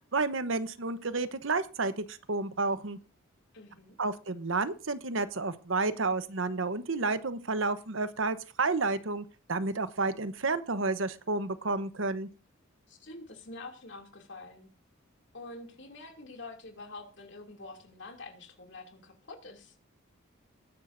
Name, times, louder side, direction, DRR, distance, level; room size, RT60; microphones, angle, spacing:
voice 1, 0.1-3.0 4.0-12.3, right 3 dB, 65° right, 12 dB, 1.0 m, -31 dB
voice 2, 3.5-4.0 12.9-14.7 15.3-19.7, left 2 dB, 55° left, 3 dB, 2.8 m, -46 dB
20.0 x 10.0 x 2.7 m, 0.34 s
head